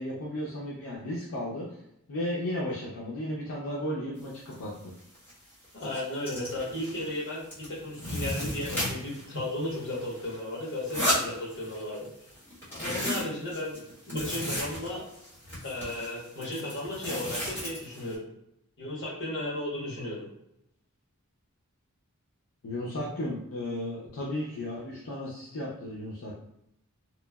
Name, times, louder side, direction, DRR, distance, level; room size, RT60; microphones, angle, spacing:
voice 1, 0.0-1.8 2.1-4.9 22.6-26.3, left 1 dB, 75° left, -5 dB, 0.5 m, -34 dB
sound 1, 4.5-4.6 5.0-5.3 5.6-7.2 7.5-9.3 9.6-12.0 12.3-18.1, equal, 10° left, 1.3 m, -34 dB
voice 2, 5.7-12.1 12.7-15.0 15.6-18.3 18.8-20.3, left 1 dB, 55° left, -5 dB, 1.1 m, -35 dB
3.0 x 2.1 x 2.2 m, 0.78 s
head